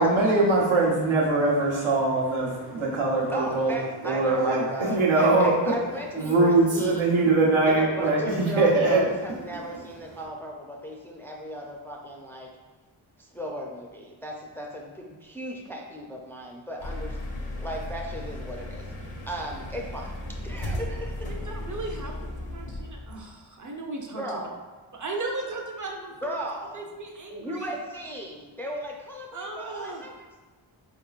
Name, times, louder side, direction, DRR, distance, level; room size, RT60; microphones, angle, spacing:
voice 1, 0.0-3.7 4.0-5.7 6.1-9.0, right 2 dB, 75° right, -4 dB, 1.0 m, -22 dB
voice 2, 3.3-7.0 7.7-12.5 13.2-17.2 17.6-18.8 19.3-20.1 20.4-21.3 24.1-24.6 26.2-26.8 27.3-30.4, right 1 dB, 5° left, -1 dB, 0.5 m, -36 dB
sound 1, 16.8-23.3, left 1 dB, 85° left, 0.9 m, -35 dB
voice 3, 21.5-22.1 22.5-24.4 24.9-26.3 26.7-27.7 29.3-30.0, right 2 dB, 40° right, 1 dB, 0.7 m, -36 dB
4.0 x 3.6 x 2.4 m, 1.3 s
cardioid pair, 55°, 49 cm